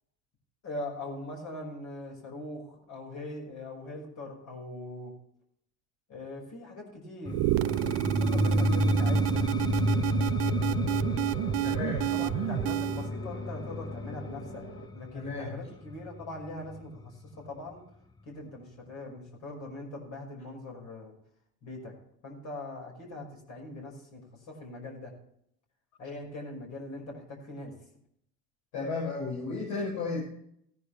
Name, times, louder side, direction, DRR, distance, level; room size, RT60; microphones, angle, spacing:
voice 1, 0.6-5.1 6.1-7.4 8.2-9.5 12.1-14.7 14.9-17.8 18.3-21.1 21.6-21.9 22.2-25.1 26.0-27.7, left 2 dB, 60° left, 0 dB, 5.8 m, -41 dB
sound 1, 7.3-17.0, left 1 dB, 10° left, 0.7 m, -31 dB
sound 2, 7.3-13.1, right 16 dB, 70° right, 0.6 m, -29 dB
sound 3, 7.6-14.9, left 1 dB, 40° left, 2.2 m, -41 dB
voice 2, 11.6-12.1 12.3-12.5 15.1-15.6 28.7-30.3, left 4 dB, 80° left, -5 dB, 6.1 m, -34 dB
17.0 x 10.5 x 3.4 m, 0.69 s
supercardioid pair, 90°, 33 cm